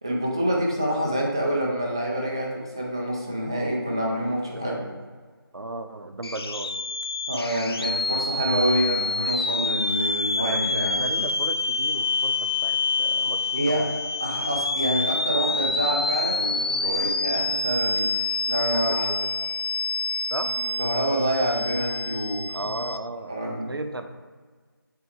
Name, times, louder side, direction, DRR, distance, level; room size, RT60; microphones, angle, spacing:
voice 1, 0.0-4.8 7.3-11.1 13.2-13.9 14.2-18.2 18.5-19.1 20.6-22.7 23.3-23.7, right 1 dB, 10° right, -3 dB, 0.4 m, -27 dB
voice 2, 4.5-5.0 5.5-6.7 10.3-13.6 18.7-19.2 20.3-20.5 22.5-24.1, right 2 dB, 75° right, 8 dB, 0.7 m, -35 dB
sound 1, 6.2-23.0, left 3 dB, 90° left, 0.5 m, -27 dB
7.4 x 4.0 x 3.5 m, 1.5 s
figure-of-eight pair, 165°, 12 cm